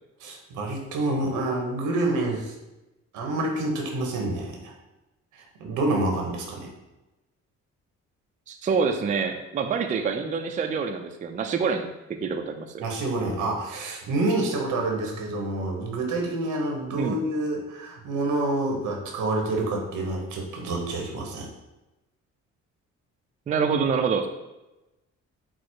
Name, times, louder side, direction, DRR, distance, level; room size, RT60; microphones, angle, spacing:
voice 1, 0.2-2.5 3.1-4.7 5.3-6.7 12.8-21.5, right 2 dB, 85° right, 1 dB, 1.0 m, -28 dB
voice 2, 8.5-12.8 16.9-17.2 23.5-24.3, right 5 dB, 25° right, 5 dB, 0.4 m, -26 dB
4.7 x 2.0 x 4.4 m, 1.0 s
cardioid pair, 90°, 30 cm